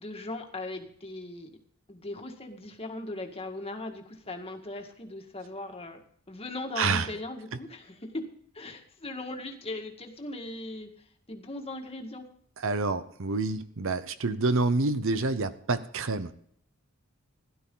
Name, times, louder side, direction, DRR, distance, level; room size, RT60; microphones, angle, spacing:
voice 1, 0.0-1.5 1.9-6.0 6.3-8.3 8.5-10.9 11.3-12.3, left 2 dB, 25° left, 3 dB, 1.9 m, -38 dB
voice 2, 6.8-7.1 12.6-16.3, right 3 dB, 65° right, 12 dB, 0.8 m, -28 dB
16.5 x 11.5 x 3.9 m, 0.65 s
head